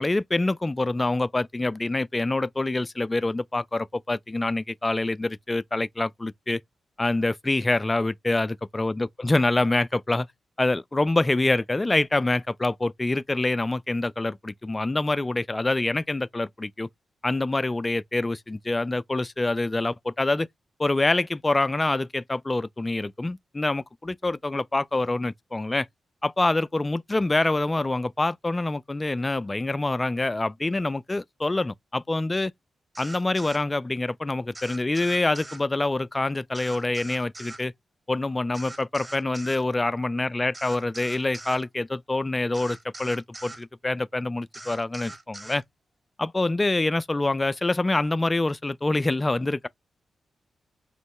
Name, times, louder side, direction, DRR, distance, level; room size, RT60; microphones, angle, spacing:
voice 1, 0.0-6.6 7.0-10.3 10.6-16.9 17.2-20.5 20.8-25.9 26.2-32.5 33.0-37.7 38.1-45.6 46.2-49.7, left 2 dB, 25° left, 0.3 m, -26 dB
sound 1, 33.0-33.6 34.6-35.6 36.5-37.6 38.5-39.6 40.5-41.6 42.5-43.6 44.5-45.6, right 2 dB, 25° right, 0.7 m, -42 dB
3.0 x 2.1 x 3.7 m
supercardioid pair, 40°, 0 cm